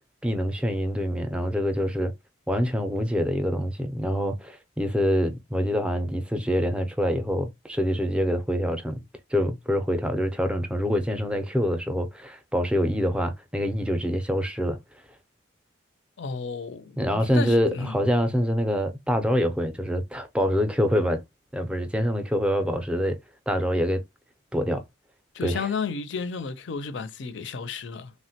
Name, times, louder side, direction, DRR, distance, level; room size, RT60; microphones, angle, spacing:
voice 1, 0.2-2.1 2.5-9.0 9.3-14.8 17.0-21.2 21.5-23.2 23.5-24.0 24.5-24.8 25.4-25.7, equal, 5° right, 0.4 m, -25 dB
voice 2, 16.2-18.0 25.3-28.1, left 5 dB, 65° left, 0.5 m, -32 dB
3.3 x 2.1 x 2.7 m
head